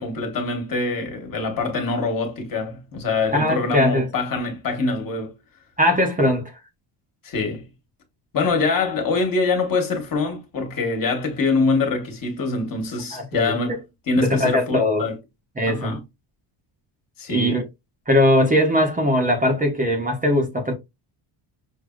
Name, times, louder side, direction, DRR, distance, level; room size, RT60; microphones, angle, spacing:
voice 1, 0.0-5.3 7.2-7.7 8.3-13.8 14.1-15.2 15.7-16.0 17.2-17.6, left 3 dB, 45° left, 1.3 m, -24 dB
voice 2, 3.3-4.1 5.8-6.5 13.1-13.8 14.2-15.0 15.6-15.9 17.3-17.6 18.1-20.7, left 1 dB, 15° right, 0.8 m, -20 dB
6.2 x 2.7 x 2.4 m
cardioid pair, 165°, 48 cm